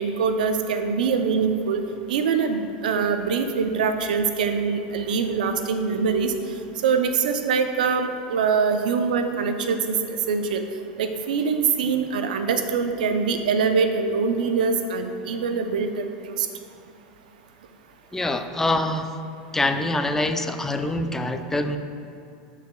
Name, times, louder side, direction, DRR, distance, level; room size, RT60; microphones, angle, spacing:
voice 1, 0.0-1.8 2.1-6.3 6.8-10.0 10.3-10.6 11.0-16.1 16.4-16.5, right 5 dB, 85° right, 7 dB, 0.5 m, -23 dB
voice 2, 18.1-19.1 19.5-21.8, left 2 dB, 10° left, 7 dB, 0.4 m, -25 dB
13.0 x 4.8 x 2.3 m, 2.6 s
hypercardioid pair, 110°, 4 cm